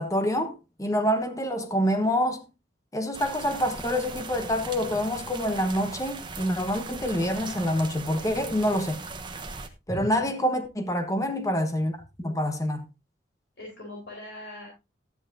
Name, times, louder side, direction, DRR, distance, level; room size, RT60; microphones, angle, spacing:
voice 1, 0.0-2.4 2.9-9.0 9.9-12.8, equal, 20° left, 1.4 m, -27 dB
sound 1, 3.1-9.7, right 4 dB, 25° right, 1.1 m, -39 dB
voice 2, 9.9-10.2 13.6-14.7, equal, 60° left, 4.6 m, -38 dB
13.0 x 10.0 x 2.8 m
head